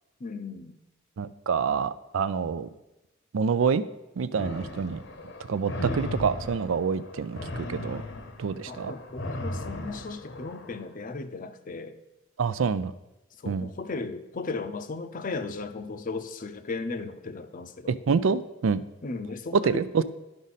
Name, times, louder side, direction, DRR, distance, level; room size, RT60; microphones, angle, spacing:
voice 1, 0.2-0.8 8.7-12.0 13.4-18.0 19.0-20.0, left 3 dB, 45° left, 10 dB, 0.6 m, -36 dB
voice 2, 1.2-2.7 3.3-3.8 4.2-5.0 5.5-8.0 8.4-8.9 12.4-12.9 13.5-13.7 17.9-18.8 19.5-20.0, right 5 dB, 85° right, 14 dB, 0.4 m, -27 dB
sound 1, 4.4-10.8, left 1 dB, 65° left, 0.9 m, -37 dB
11.5 x 5.2 x 4.1 m, 0.97 s
head